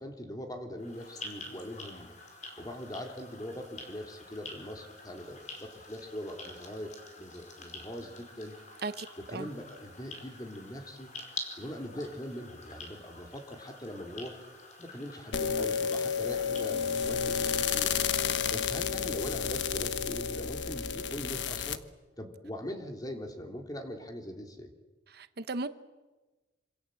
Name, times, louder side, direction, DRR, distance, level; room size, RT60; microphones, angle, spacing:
voice 1, 0.0-2.1 2.6-8.5 9.2-11.1 11.6-14.4 14.8-17.9 18.5-21.8 22.2-24.7, equal, 20° left, 4 dB, 3.2 m, -41 dB
sound 1, 0.8-19.3, left 2 dB, 45° left, 4.9 m, -48 dB
sound 2, 15.3-21.8, left 7 dB, 80° left, 1.3 m, -31 dB
voice 2, 25.1-25.7, right 3 dB, 60° right, 11 dB, 1.0 m, -35 dB
27.0 x 26.5 x 7.8 m, 1.2 s
head